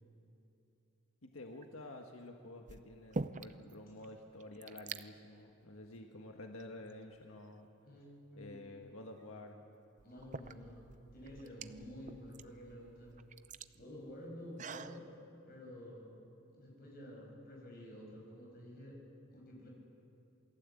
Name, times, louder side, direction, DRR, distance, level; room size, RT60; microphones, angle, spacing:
voice 1, 1.2-7.7 8.4-9.6, left 2 dB, 90° left, 3 dB, 1.6 m, -50 dB
sound 1, 1.5-1.9 2.7-3.7 4.0-4.1 4.3-5.0 5.8-6.0 6.6-7.5 9.2-9.3 10.0-15.0, right 3 dB, 35° right, 0.6 m, -46 dB
voice 2, 7.8-8.6 10.0-10.8 11.1-13.1 13.7-15.1 15.5-16.1 16.5-19.0 19.3-19.7, equal, 45° left, -1 dB, 6.7 m, -50 dB
28.0 x 19.0 x 8.5 m, 2.9 s
head